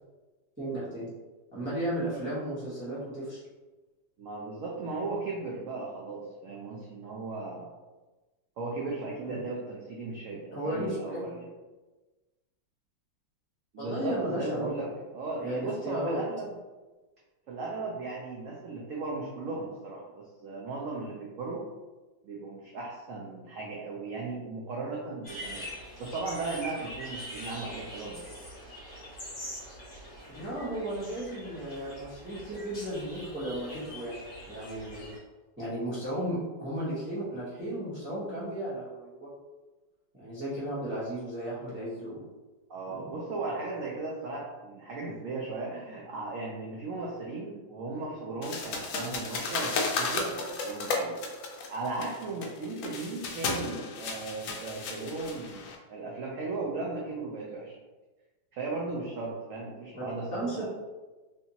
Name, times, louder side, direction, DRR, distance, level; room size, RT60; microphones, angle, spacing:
voice 1, 0.6-1.1 1.5-3.4 9.2-9.5 10.5-11.2 13.8-15.0 15.4-16.2 30.3-34.1 34.5-35.0 35.6-39.3 40.1-42.2 42.9-43.0 59.9-60.7, right 1 dB, 10° right, -9 dB, 0.5 m, -34 dB
voice 2, 4.2-7.7 8.6-11.5 13.7-14.9 15.1-16.5 17.5-21.6 22.2-25.7 26.0-28.4 42.7-51.2 51.7-57.8 58.5-60.7, right 3 dB, 85° right, -3 dB, 0.7 m, -36 dB
sound 1, 25.2-35.2, equal, 35° left, 1.0 m, -43 dB
sound 2, 48.4-55.8, left 3 dB, 75° left, 0.8 m, -34 dB
3.3 x 2.8 x 2.7 m, 1.2 s
omnidirectional pair, 2.0 m